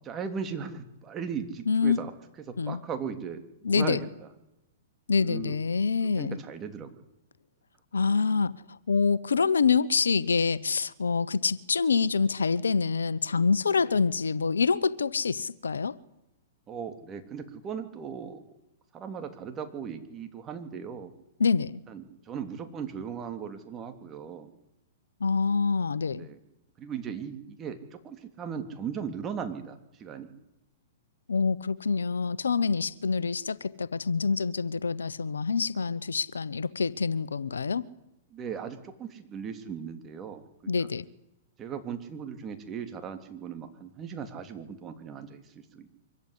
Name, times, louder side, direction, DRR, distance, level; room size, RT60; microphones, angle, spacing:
voice 1, 0.0-2.1 2.5-4.3 5.2-5.6 6.2-6.9 13.8-14.0 16.7-18.4 18.9-21.1 21.9-24.5 26.1-26.4 26.8-30.3 38.3-40.9 41.6-45.9, right 7 dB, 25° right, 3.2 m, -38 dB
voice 2, 1.7-2.0 2.6-2.8 3.6-4.0 5.1-6.4 7.9-8.5 8.9-15.9 21.4-21.8 25.2-26.2 31.3-37.8 40.7-41.0, left 5 dB, 90° left, 1.0 m, -26 dB
24.5 x 15.0 x 10.0 m
hypercardioid pair, 125°, 0 cm